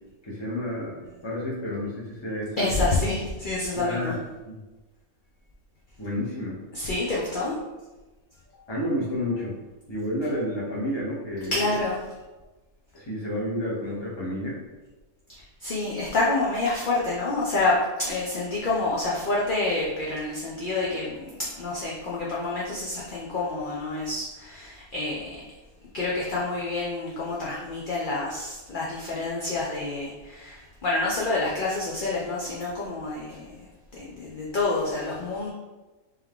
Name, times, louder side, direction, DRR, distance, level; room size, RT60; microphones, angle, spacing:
voice 1, 0.2-2.7 3.8-4.1 4.4-4.5 6.0-6.6 8.7-9.6 9.9-11.6 12.9-14.6, left 1 dB, 20° left, -4 dB, 0.9 m, -30 dB
voice 2, 2.6-4.2 6.7-7.6 8.5-8.7 11.5-12.0 15.3-25.3 25.9-35.5, left 2 dB, 50° left, -5 dB, 0.6 m, -28 dB
3.6 x 3.0 x 3.6 m, 1.2 s
omnidirectional pair, 1.5 m